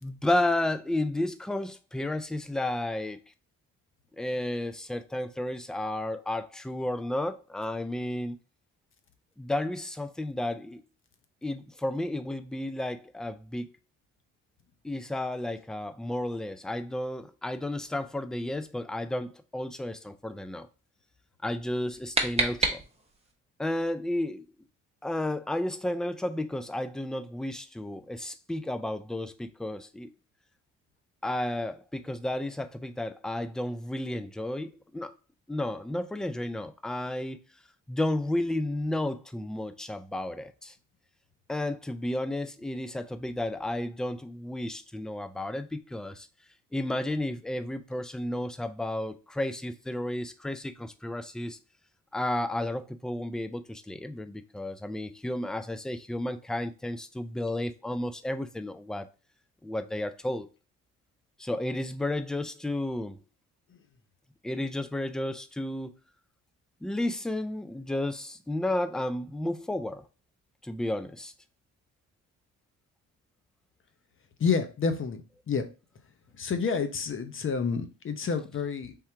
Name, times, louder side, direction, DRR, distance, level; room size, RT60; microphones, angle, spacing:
voice 1, 0.0-3.2 4.1-8.4 9.4-10.8 11.4-13.7 14.8-20.7 21.4-22.8 23.6-24.5 25.0-30.1 31.2-35.1 35.5-37.4 37.9-40.8 41.5-46.3 46.7-51.6 52.1-59.1 59.6-60.5 61.4-63.2 64.4-65.9 66.8-70.1 70.6-71.3, left 1 dB, ahead, 0.4 m, -32 dB
sound 1, 21.6-23.3, right 3 dB, 20° right, 1.1 m, -30 dB
voice 2, 74.4-75.2 75.5-75.6 76.4-79.0, left 5 dB, 45° left, 0.8 m, -29 dB
3.7 x 2.8 x 4.4 m
cardioid pair, 90°, 30 cm